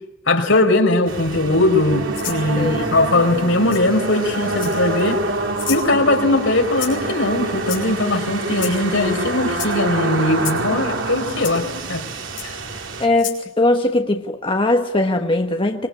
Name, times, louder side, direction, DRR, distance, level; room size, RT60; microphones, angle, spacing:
voice 1, 0.3-5.2 5.7-12.0 12.4-12.5, left 2 dB, 80° left, 4.5 m, -19 dB
sound 1, 1.1-13.1, right 2 dB, 85° right, 3.0 m, -26 dB
Rattle (instrument), 2.1-2.4 3.7-3.8 4.5-5.0 5.6-5.9 6.8-7.1 7.6-8.1 8.6-8.8 9.5-9.7 10.4-10.6 11.4-11.5 12.4-12.5 13.1-13.4, left 11 dB, 45° left, 5.4 m, -30 dB
voice 2, 13.0-15.9, left 2 dB, 25° left, 1.3 m, -20 dB
25.0 x 23.5 x 9.9 m
head